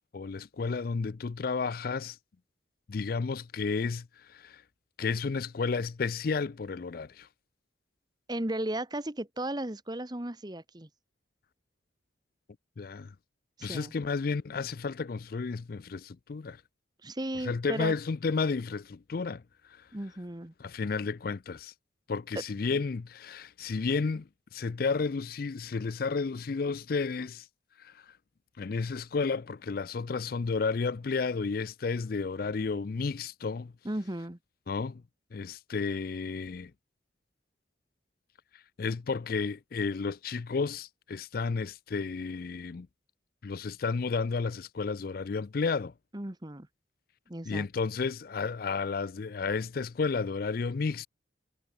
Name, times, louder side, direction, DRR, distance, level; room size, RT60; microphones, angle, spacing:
voice 1, 0.1-2.2 2.9-4.6 5.0-7.3 12.8-13.1 13.6-16.6 17.4-19.4 19.7-19.9 20.6-21.7 22.1-27.5 27.8-28.1 28.6-33.7 34.7-35.0 35.3-36.7 38.8-42.9 43.4-45.9 47.5-51.1, left 4 dB, 50° left, 0.4 m, -32 dB
voice 2, 8.3-10.9 13.6-13.9 17.0-18.0 19.9-20.5 22.7-22.8 33.8-34.4 46.1-46.7 47.3-47.7, right 1 dB, 20° right, 1.3 m, -35 dB
head